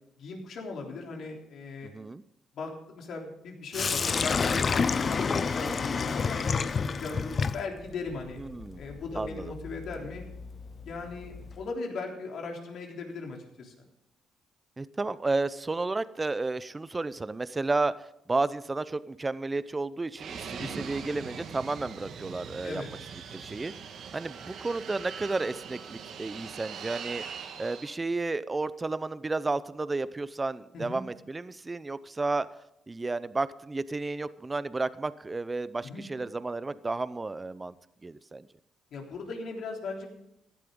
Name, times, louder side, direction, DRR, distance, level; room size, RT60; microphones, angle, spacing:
voice 1, 0.2-1.9 2.5-8.4 8.8-10.3 10.8-13.7 20.6-20.9 22.6-22.9 30.7-31.0 35.8-36.1 38.9-40.1, left 3 dB, 70° left, 1 dB, 3.5 m, -38 dB
Sink (filling or washing), 3.7-11.6, left 5 dB, 40° left, 0.6 m, -30 dB
voice 2, 8.4-8.8 9.1-9.5 14.8-17.9 18.3-22.8 23.3-23.7 24.1-27.2 27.6-32.5 32.9-37.7 38.0-38.5, right 3 dB, 20° right, 16 dB, 0.7 m, -32 dB
Fixed-wing aircraft airplane, 20.2-28.0, right 7 dB, 70° right, 1.6 m, -41 dB
16.0 x 12.0 x 3.8 m, 0.81 s
cardioid pair, 90°, 0 cm